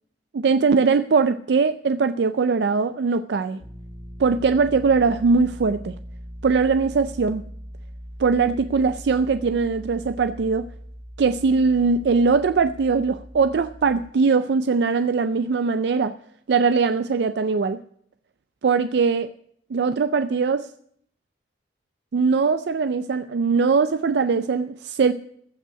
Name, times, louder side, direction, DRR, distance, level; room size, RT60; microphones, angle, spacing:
voice 1, 0.3-3.6 4.2-5.9 6.4-7.4 8.2-10.7 11.2-16.1 16.5-17.8 18.6-19.3 19.7-20.7 22.1-25.1, right 4 dB, 70° right, 11 dB, 0.4 m, -21 dB
sound 1, 3.6-14.1, equal, 20° right, 2.5 m, -40 dB
15.0 x 5.5 x 9.7 m, 0.66 s
head